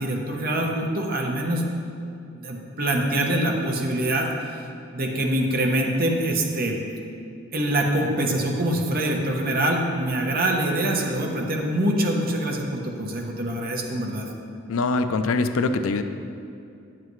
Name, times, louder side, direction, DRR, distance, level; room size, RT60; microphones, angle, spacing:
voice 1, 0.0-1.6 2.3-4.6 4.9-6.8 7.5-14.2, right 1 dB, 45° right, 1 dB, 0.9 m, -24 dB
voice 2, 14.7-16.0, left 3 dB, 70° left, 9 dB, 0.4 m, -23 dB
9.3 x 7.5 x 3.1 m, 2.5 s
head